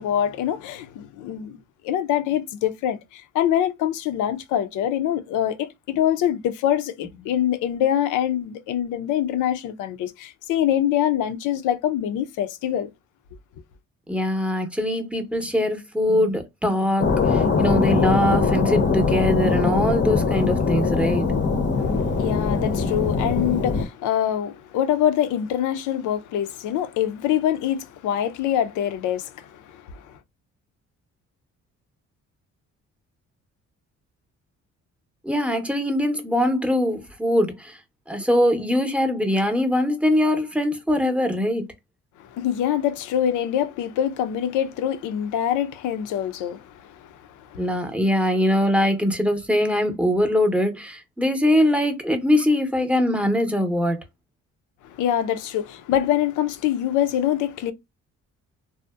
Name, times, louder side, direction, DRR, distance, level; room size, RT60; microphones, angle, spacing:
voice 1, 0.0-1.6 1.8-12.9 21.8-30.0 42.2-47.8 54.8-57.7, left 10 dB, 90° left, 0.5 m, -25 dB
voice 2, 14.1-21.4 35.2-37.8 38.1-41.7 47.6-54.0, left 1 dB, 5° right, 0.6 m, -22 dB
sound 1, 17.0-23.9, left 4 dB, 35° left, 0.6 m, -22 dB
2.6 x 2.0 x 2.2 m
cardioid pair, 90°, 30 cm